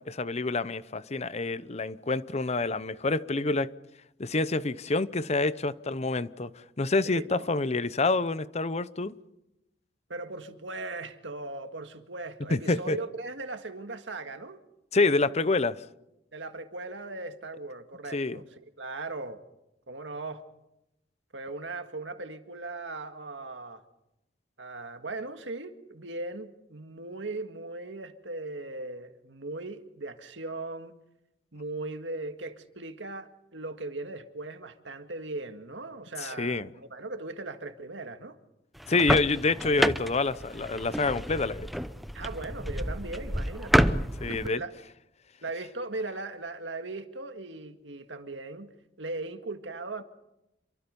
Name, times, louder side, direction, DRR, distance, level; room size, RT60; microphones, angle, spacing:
voice 1, 0.0-3.7 4.2-9.1 12.5-13.0 14.9-15.8 18.1-18.4 36.2-36.7 38.9-41.7 44.2-44.6, left 3 dB, 35° left, 0.8 m, -27 dB
voice 2, 7.0-7.5 10.1-14.6 16.3-19.4 19.9-20.4 21.3-23.8 24.6-31.0 31.5-38.4 42.1-43.9 44.3-44.7 45.4-48.7 49.0-50.0, right 2 dB, 90° right, 1.9 m, -38 dB
sound 1, 38.8-44.5, equal, ahead, 0.7 m, -29 dB
27.5 x 23.5 x 5.4 m
head